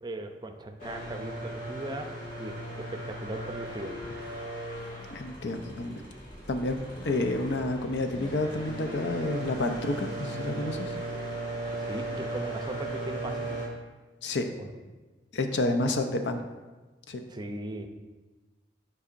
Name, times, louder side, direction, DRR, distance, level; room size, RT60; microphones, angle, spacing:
voice 1, 0.0-2.1 2.4-3.9 11.7-13.6 14.6-14.7 17.3-17.9, right 1 dB, 25° right, 6 dB, 0.5 m, -38 dB
sound 1, 0.8-13.7, right 1 dB, 45° left, 1.9 m, -37 dB
voice 2, 5.1-6.0 6.5-6.8 7.0-10.9 14.2-14.5 15.3-16.4 17.1-17.2, left 2 dB, 75° left, 6 dB, 0.6 m, -29 dB
9.9 x 4.7 x 2.5 m, 1.2 s
head